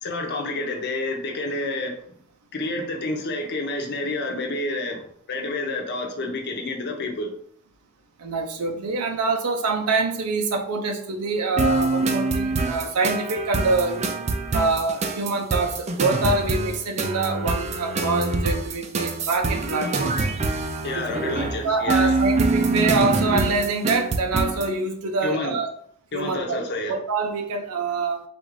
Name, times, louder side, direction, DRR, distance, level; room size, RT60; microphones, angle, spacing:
voice 1, 0.0-2.0 2.5-7.3 20.8-22.1 25.2-25.5 26.1-27.0, left 2 dB, 50° left, 2 dB, 0.8 m, -29 dB
voice 2, 8.2-14.1 14.5-20.1 20.9-21.4 21.6-25.7 26.1-26.6 26.9-28.2, right 3 dB, 85° right, 4 dB, 0.6 m, -25 dB
sound 1, 11.6-24.7, right 3 dB, 30° right, 0.4 m, -25 dB
4.0 x 2.5 x 4.7 m, 0.64 s
head